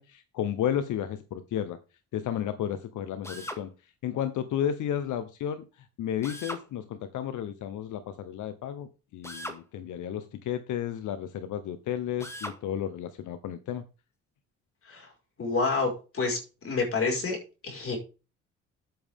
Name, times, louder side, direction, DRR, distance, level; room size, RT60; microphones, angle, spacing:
voice 1, 0.0-1.8 2.1-3.7 4.0-5.6 6.0-13.8, left 10 dB, 80° left, 11 dB, 1.0 m, -32 dB
Drill, 3.2-3.6 6.2-6.7 9.2-9.6 12.2-12.6, equal, 10° left, 2.1 m, -38 dB
voice 2, 15.4-16.4 16.6-17.4 17.6-18.0, left 4 dB, 45° left, 1 dB, 5.1 m, -28 dB
9.4 x 8.9 x 3.6 m, 0.32 s
cardioid pair, 90°, 30 cm